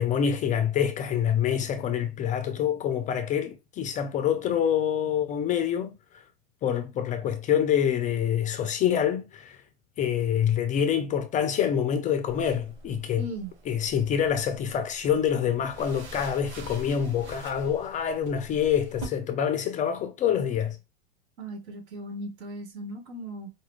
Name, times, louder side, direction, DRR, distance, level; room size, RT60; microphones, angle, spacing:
voice 1, 0.0-5.9 6.6-9.6 10.0-13.3 13.7-20.8, left 8 dB, 25° left, 0.4 m, -26 dB
sound 1, 12.3-19.1, right 3 dB, 35° right, 2.3 m, -45 dB
voice 2, 13.2-13.5 21.4-23.5, right 1 dB, 70° right, 1.5 m, -37 dB
4.8 x 2.3 x 3.1 m
hypercardioid pair, 115°, 33 cm